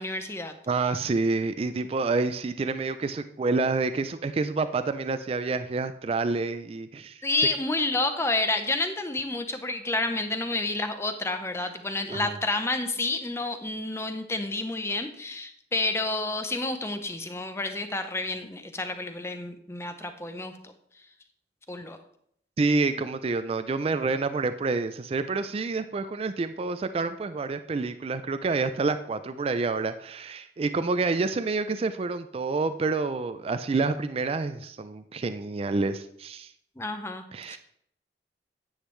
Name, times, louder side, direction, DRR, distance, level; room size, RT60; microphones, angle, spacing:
voice 1, 0.0-0.5 7.2-20.7 21.7-22.0 36.8-37.6, left 2 dB, 15° left, 8 dB, 0.6 m, -30 dB
voice 2, 0.7-7.2 12.1-12.3 22.6-36.5 37.3-37.6, right 3 dB, 35° right, 10 dB, 0.3 m, -28 dB
9.7 x 8.0 x 3.2 m, 0.70 s
head